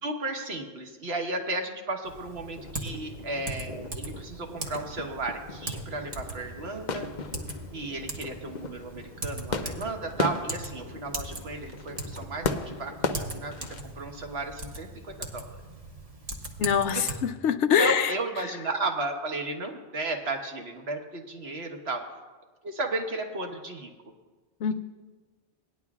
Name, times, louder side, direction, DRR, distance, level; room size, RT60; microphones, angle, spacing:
voice 1, 0.0-7.1 7.7-15.5 17.8-22.0 22.6-23.9, right 2 dB, 65° right, 3 dB, 1.5 m, -34 dB
Typing, 2.0-17.1, right 2 dB, 35° right, 1.1 m, -40 dB
sound 1, 2.5-13.8, left 4 dB, 50° left, 0.7 m, -37 dB
voice 2, 16.6-18.1 24.6-24.7, left 7 dB, 80° left, 11 dB, 0.9 m, -24 dB
18.5 x 10.0 x 2.4 m, 1.3 s
omnidirectional pair, 1.2 m